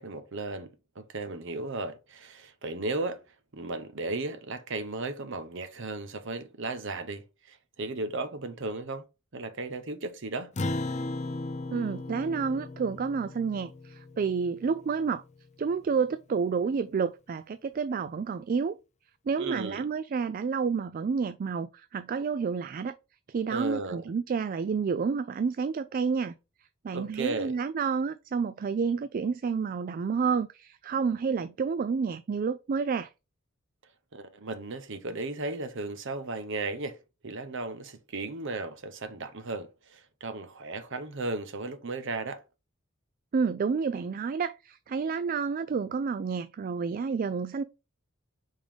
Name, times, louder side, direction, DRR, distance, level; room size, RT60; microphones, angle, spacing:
voice 1, 0.0-3.2 3.5-9.0 9.3-10.5 19.4-19.8 23.5-24.0 26.9-27.5 34.1-37.0 37.2-42.4, right 3 dB, 60° right, 0.9 m, -35 dB
Acoustic guitar, 10.6-15.2, left 2 dB, 35° left, 0.5 m, -36 dB
voice 2, 11.7-15.2 15.6-18.8 19.3-23.0 23.3-26.3 26.8-33.1 43.3-47.6, right 5 dB, 40° right, 0.3 m, -29 dB
5.2 x 3.6 x 5.1 m
head